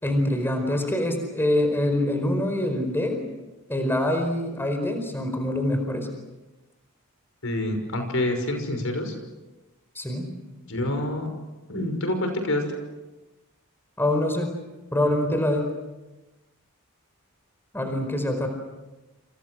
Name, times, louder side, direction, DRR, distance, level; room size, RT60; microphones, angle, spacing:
voice 1, 0.0-3.3 3.7-6.1 9.9-10.3 14.0-14.5 14.9-15.7 17.7-18.5, left 1 dB, 10° left, 5 dB, 4.7 m, -25 dB
voice 2, 7.4-9.1 10.7-11.3 11.7-12.8, left 1 dB, 65° left, 6 dB, 6.0 m, -27 dB
29.5 x 28.5 x 6.4 m, 1.1 s
head